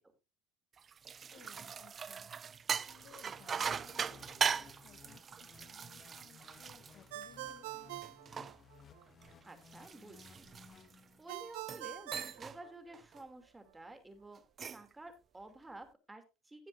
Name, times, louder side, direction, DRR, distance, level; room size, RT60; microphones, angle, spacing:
sound 1, 0.8-7.6 8.0-11.0 11.5-11.9 12.1-12.6 12.9-13.2 14.3-14.9, right 6 dB, 30° right, 0.5 m, -40 dB
voice 1, 1.3-2.3 2.8-7.9, left 11 dB, 55° left, 1.2 m, -61 dB
sound 2, 3.3-11.5, left 5 dB, 35° left, 1.6 m, -59 dB
Ringtone, 7.1-9.1 11.3-13.2, right 15 dB, 85° right, 1.1 m, -45 dB
voice 2, 9.5-10.4 11.2-14.4 14.7-16.7, right 2 dB, 10° right, 2.8 m, -52 dB
17.0 x 7.4 x 2.7 m
supercardioid pair, 105°, 0 cm